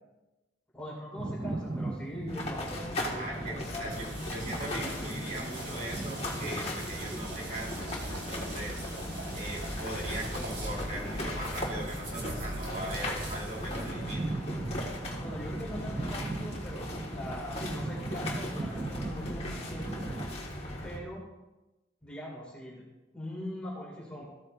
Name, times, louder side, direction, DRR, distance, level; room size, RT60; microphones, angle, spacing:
voice 1, 0.7-3.8 6.9-7.3 15.2-20.0 20.8-21.2 22.0-22.8 23.1-24.2, left 1 dB, 5° left, -5 dB, 2.2 m, -41 dB
sound 1, 1.2-20.3, right 2 dB, 20° right, 0.3 m, -40 dB
sound 2, 2.3-21.0, left 1 dB, 35° left, 1.7 m, -38 dB
voice 2, 3.0-8.8 9.3-14.3, right 1 dB, 45° right, -5 dB, 3.4 m, -40 dB
sound 3, 3.9-13.9, right 1 dB, 65° right, 2.4 m, -44 dB
14.5 x 8.7 x 2.6 m, 1.1 s
head